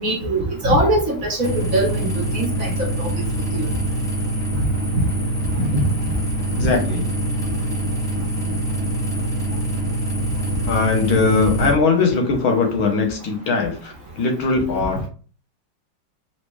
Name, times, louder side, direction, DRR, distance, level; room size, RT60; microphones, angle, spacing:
voice 1, 0.0-3.1 3.5-3.7 5.6-5.8, right 1 dB, 50° right, -1 dB, 1.5 m, -22 dB
sound 1, 1.4-11.7, right 1 dB, 5° left, 0.5 m, -24 dB
voice 2, 6.6-7.0 10.6-13.9 14.2-15.1, left 4 dB, 80° left, 2 dB, 1.8 m, -20 dB
4.7 x 3.2 x 3.2 m, 0.38 s
omnidirectional pair, 2.2 m